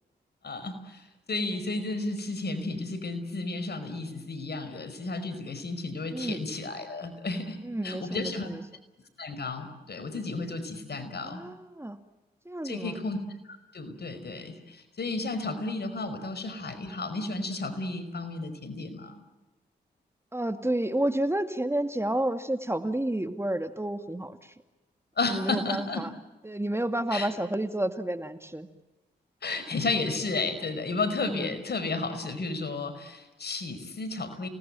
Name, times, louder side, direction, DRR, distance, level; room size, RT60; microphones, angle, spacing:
voice 1, 0.4-1.0 1.3-8.5 9.2-11.4 12.6-19.2 25.2-26.0 27.1-27.3 29.4-34.5, left 3 dB, 60° left, 10 dB, 5.3 m, -33 dB
voice 2, 6.1-6.4 7.6-8.6 11.2-12.0 12.5-13.0 16.1-16.3 20.3-24.5 25.2-26.1 26.4-28.7 31.2-31.5, right 1 dB, 15° right, 9 dB, 2.2 m, -30 dB
29.5 x 19.5 x 9.0 m, 1.1 s
supercardioid pair, 45°, 19 cm